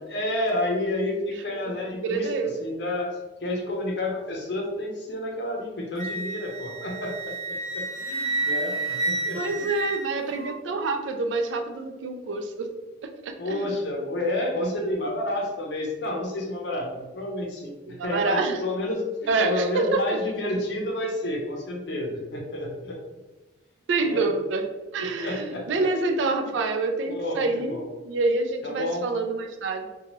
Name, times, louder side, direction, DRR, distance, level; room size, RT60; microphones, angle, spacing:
voice 1, 0.1-9.6 13.4-23.0 24.0-24.3 25.0-25.9 26.1-26.5 27.1-27.8 28.6-29.1, left 1 dB, 70° left, 0 dB, 0.6 m, -30 dB
voice 2, 2.0-2.5 9.3-12.7 13.0-13.6 17.9-18.6 19.3-20.2 23.9-24.7 24.9-27.8 28.0-29.9, right 3 dB, 85° right, 6 dB, 0.4 m, -27 dB
Wind instrument woodwind instrument, 6.0-10.6, right 2 dB, 20° left, 0.3 m, -30 dB
2.8 x 2.3 x 3.0 m, 1.2 s
head